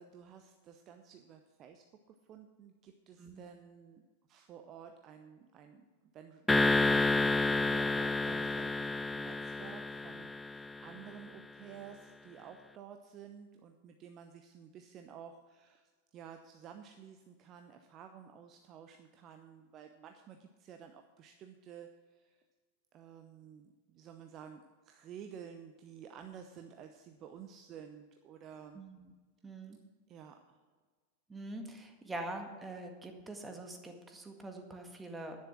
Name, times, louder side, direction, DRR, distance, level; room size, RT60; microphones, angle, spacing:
voice 1, 0.0-4.0 4.3-5.9 6.1-22.4 22.9-28.8 30.1-30.6, right 8 dB, 35° right, 6 dB, 0.8 m, -52 dB
sound 1, 6.5-11.0, left 3 dB, 10° left, 0.4 m, -30 dB
voice 2, 28.7-29.1 29.4-29.8 31.3-35.4, right 2 dB, 10° right, 4 dB, 1.8 m, -44 dB
11.0 x 10.0 x 6.1 m, 1.4 s
figure-of-eight pair, 90°, 0 cm